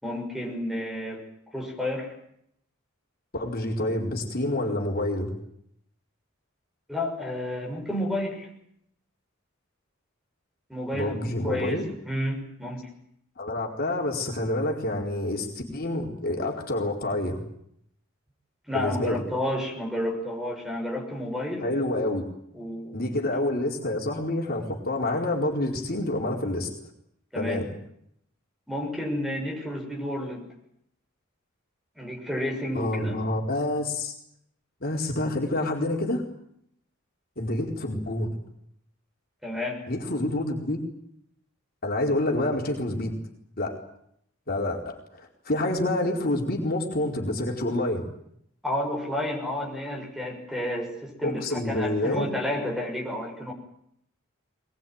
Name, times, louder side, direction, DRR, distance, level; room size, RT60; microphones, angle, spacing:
voice 1, 0.0-1.2 1.5-2.1 6.9-8.5 10.7-11.8 12.0-12.9 18.7-21.7 22.5-23.0 27.3-27.6 28.7-30.5 32.0-33.2 39.4-39.9 48.6-53.5, left 1 dB, ahead, 1 dB, 6.5 m, -31 dB
voice 2, 3.3-5.3 10.9-11.8 13.4-17.4 18.7-19.2 21.6-22.2 22.9-26.7 27.4-27.7 32.7-34.1 34.8-36.2 37.4-38.3 39.9-40.9 41.8-43.1 43.6-43.8 44.5-48.1 51.2-52.3, left 1 dB, 50° left, 0 dB, 4.4 m, -28 dB
22.0 x 21.5 x 9.5 m, 0.73 s
head